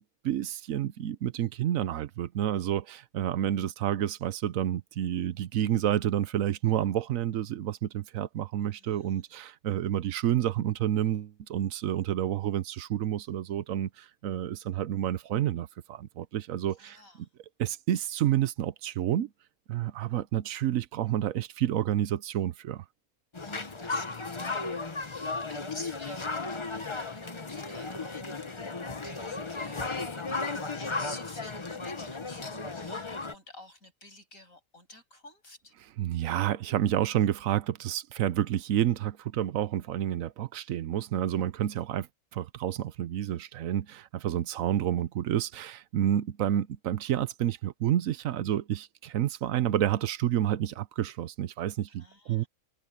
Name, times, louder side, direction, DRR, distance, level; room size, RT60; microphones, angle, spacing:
voice 1, 0.0-17.3 17.6-19.3 19.7-22.8 36.0-42.1 42.3-52.4, right 11 dB, 65° right, 1.1 m, -29 dB
voice 2, 8.7-9.2 16.8-17.3 23.4-28.5 29.0-35.7 51.9-52.5, left 2 dB, 60° left, 7.8 m, -50 dB
sound 1, 23.3-33.3, left 3 dB, 20° left, 0.9 m, -35 dB
omnidirectional pair, 1.6 m